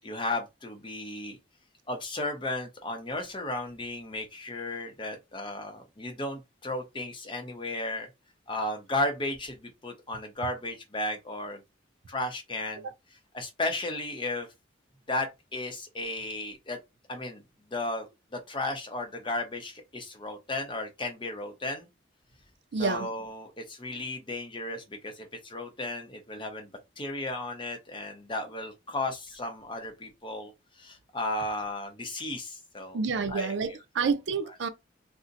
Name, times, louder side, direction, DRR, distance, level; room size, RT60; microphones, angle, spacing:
voice 1, 0.0-1.4 1.9-8.1 8.5-11.6 12.1-12.9 13.3-14.5 15.1-16.8 17.1-17.4 17.7-18.1 18.3-21.9 22.8-26.7 27.0-30.5 30.8-33.0 33.3-34.1 34.4-34.6, left 2 dB, 25° left, 0.7 m, -34 dB
voice 2, 22.7-23.1 32.9-34.7, right 5 dB, 70° right, 0.4 m, -29 dB
2.6 x 2.1 x 3.8 m
head